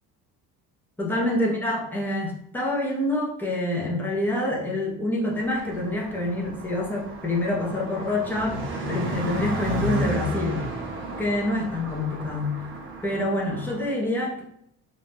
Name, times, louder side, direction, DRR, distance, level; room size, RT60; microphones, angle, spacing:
voice 1, 1.0-8.6 8.9-10.6 11.2-12.6 13.0-14.4, left 1 dB, 5° left, -3 dB, 0.4 m, -26 dB
Car passing by, 5.3-13.9, right 1 dB, 30° right, 0.7 m, -33 dB
2.5 x 2.2 x 3.3 m, 0.74 s
cardioid pair, 150°, 41 cm